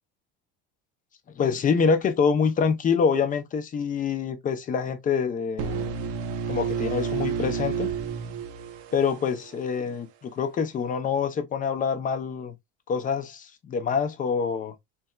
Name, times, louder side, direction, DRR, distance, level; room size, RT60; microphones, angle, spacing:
voice 1, 1.4-6.0 6.5-7.9 8.9-12.5 12.9-14.7, left 6 dB, 25° left, 0.7 m, -26 dB
sound 1, 5.6-9.5, right 6 dB, 75° right, 0.8 m, -30 dB
4.2 x 3.3 x 2.3 m
cardioid pair, 140°, 31 cm